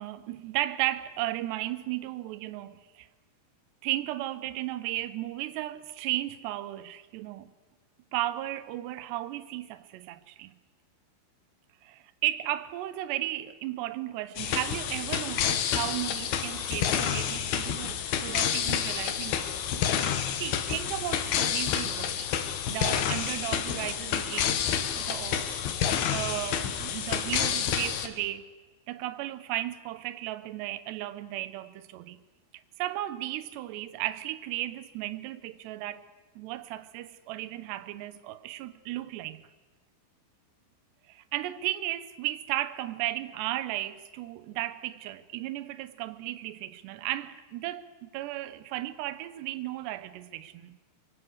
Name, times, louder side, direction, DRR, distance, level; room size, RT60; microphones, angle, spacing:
voice 1, 0.0-3.1 3.8-7.5 8.1-10.6 11.8-19.5 20.4-22.3 22.7-25.6 26.0-28.5 28.9-32.2 32.8-36.1 36.4-39.4 41.1-50.8, right 15 dB, 75° right, 3.0 m, -35 dB
sound 1, 14.4-28.1, left 8 dB, 65° left, 3.1 m, -29 dB
25.0 x 24.5 x 8.0 m
omnidirectional pair, 5.4 m